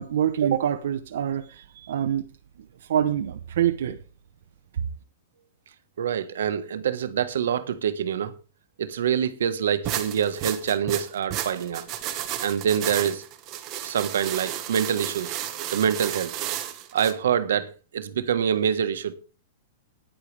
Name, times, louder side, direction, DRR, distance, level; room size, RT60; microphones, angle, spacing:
voice 1, 0.0-2.3 2.8-4.0, right 10 dB, 70° right, 0.9 m, -25 dB
voice 2, 6.0-8.3 8.8-11.9 12.4-13.2 13.8-15.4 15.7-16.4 16.9-19.1, right 8 dB, 85° right, 1.4 m, -25 dB
sound 1, 9.8-17.1, right 11 dB, 25° right, 1.3 m, -32 dB
15.0 x 10.0 x 3.4 m
supercardioid pair, 170°, 0 cm